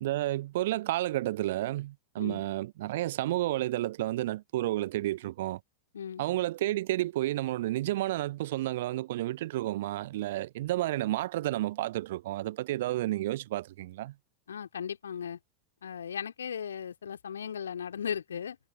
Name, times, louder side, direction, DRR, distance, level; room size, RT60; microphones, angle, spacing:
voice 1, 0.0-5.6 6.2-14.1, right 15 dB, 55° right, 0.7 m, -31 dB
voice 2, 5.9-6.3 14.5-15.4 15.8-18.6, left 8 dB, 70° left, 2.7 m, -37 dB
figure-of-eight pair, 90°, 0 cm